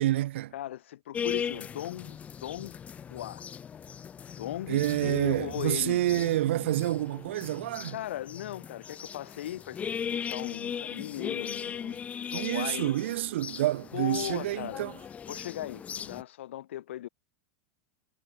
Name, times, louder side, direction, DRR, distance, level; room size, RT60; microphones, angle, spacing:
voice 1, 0.0-0.5 4.7-8.0 12.3-14.9, right 14 dB, 80° right, 1.6 m, -28 dB
voice 2, 0.5-2.8 3.1-3.4 4.3-6.3 7.9-12.9 13.9-14.8 15.3-17.1, left 13 dB, 85° left, 6.7 m, -38 dB
sound 1, 1.1-16.2, left 7 dB, 20° left, 0.8 m, -38 dB
supercardioid pair, 130°, 6 cm